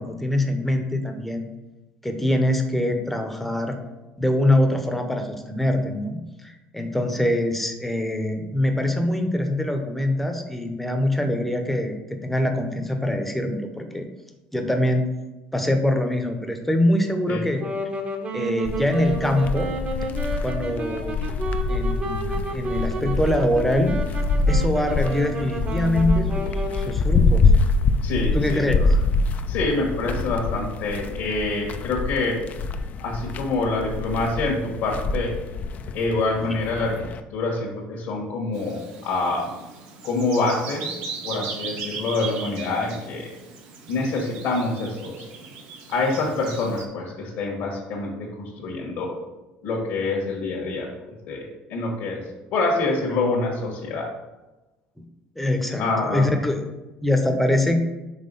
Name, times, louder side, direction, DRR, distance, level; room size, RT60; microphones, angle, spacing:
voice 1, 0.0-1.5 2.0-3.8 4.2-14.1 14.5-15.0 15.5-17.6 18.3-19.7 20.4-21.2 21.7-24.0 24.5-26.5 26.7-27.5 28.3-28.8 55.0-55.1 55.4-56.6 57.0-57.8, left 1 dB, 5° left, 4 dB, 0.8 m, -23 dB
Wind instrument woodwind instrument, 17.5-27.2, right 2 dB, 35° right, 1.0 m, -32 dB
sound 1, 18.7-37.2, left 3 dB, 45° left, 0.4 m, -25 dB
voice 2, 28.0-28.6 29.5-32.4 33.0-35.4 35.9-37.1 37.3-39.5 40.0-41.0 41.2-43.3 43.9-45.3 45.9-49.2 49.6-50.9 51.3-52.2 52.5-54.1 55.8-56.3, left 3 dB, 65° left, -2 dB, 1.4 m, -26 dB
Bird vocalization bird call bird song, 38.5-46.9, right 5 dB, 80° right, 1.1 m, -38 dB
5.6 x 3.4 x 5.4 m, 1.1 s
supercardioid pair, 110°, 4 cm